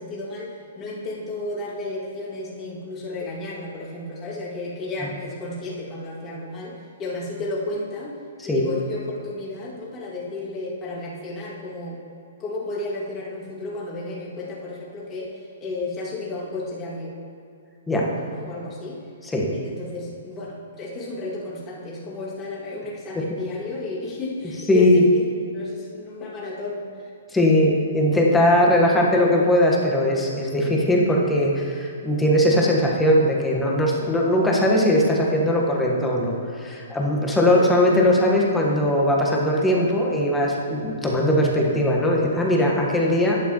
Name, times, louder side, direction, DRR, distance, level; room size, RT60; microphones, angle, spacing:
voice 1, 0.0-8.2 8.4-12.0 12.4-17.1 18.1-19.0 19.4-25.2 25.5-26.9, left 2 dB, 25° left, -6 dB, 2.2 m, -33 dB
voice 2, 24.7-25.0 27.3-43.4, left 1 dB, 10° left, -2 dB, 1.3 m, -20 dB
11.0 x 8.3 x 3.0 m, 2.5 s
hypercardioid pair, 145°, 0 cm